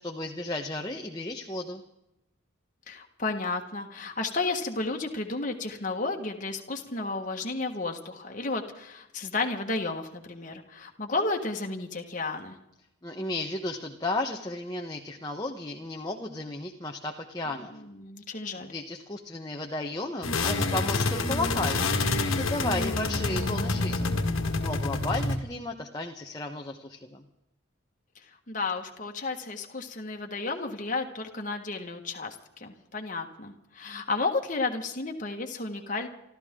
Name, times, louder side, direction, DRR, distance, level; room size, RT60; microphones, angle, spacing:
voice 1, 0.0-1.8 13.0-17.7 18.7-22.0 22.3-24.2 24.6-27.2, left 2 dB, 20° left, 2 dB, 1.1 m, -34 dB
voice 2, 2.9-12.6 17.7-18.7 28.1-36.1, left 3 dB, 40° left, 2 dB, 1.6 m, -32 dB
sound 1, 20.2-25.4, left 3 dB, 85° left, 1.9 m, -27 dB
29.0 x 13.0 x 3.8 m, 0.86 s
head